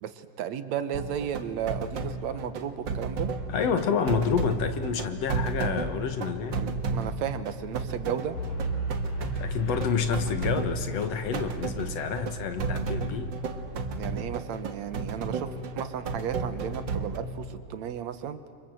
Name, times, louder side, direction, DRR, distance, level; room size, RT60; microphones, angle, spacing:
voice 1, 0.0-3.3 6.6-8.4 14.0-18.4, right 9 dB, 70° right, 11 dB, 2.3 m, -34 dB
sound 1, 0.9-17.2, right 4 dB, 45° right, 1.8 m, -33 dB
voice 2, 3.5-6.6 9.4-13.4, left 6 dB, 65° left, 9 dB, 2.4 m, -28 dB
sound 2, 8.3-14.3, right 2 dB, 90° left, 5.7 m, -36 dB
30.0 x 25.0 x 7.7 m, 2.6 s
omnidirectional pair, 3.3 m